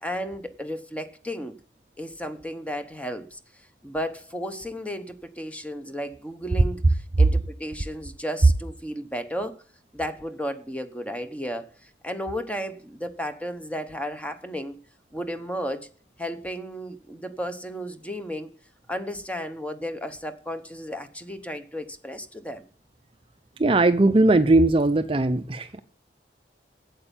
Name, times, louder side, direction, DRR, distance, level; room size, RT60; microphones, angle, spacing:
voice 1, 0.0-1.6 2.0-3.4 3.8-9.6 9.9-14.8 15.1-15.9 16.2-18.5 18.9-22.6, equal, 10° left, 0.9 m, -33 dB
voice 2, 23.6-25.8, right 2 dB, 30° right, 0.6 m, -19 dB
8.6 x 8.1 x 8.9 m
head